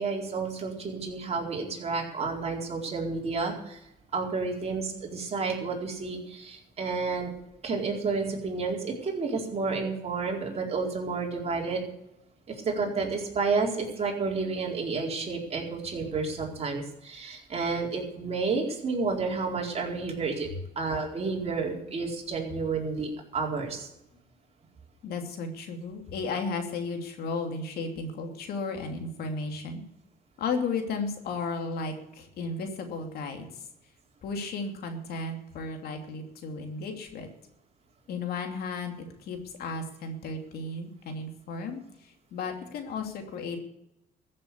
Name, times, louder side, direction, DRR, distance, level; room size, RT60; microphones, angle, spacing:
voice 1, 0.0-3.8 4.1-7.3 7.6-11.8 12.5-20.5 20.8-23.9, right 4 dB, 40° right, 0 dB, 4.3 m, -30 dB
voice 2, 25.0-29.8 30.4-33.5 34.2-37.3 38.1-38.9 39.2-43.6, left 4 dB, 65° left, 4 dB, 2.9 m, -34 dB
14.5 x 7.5 x 8.3 m, 0.84 s
cardioid pair, 110°, 17 cm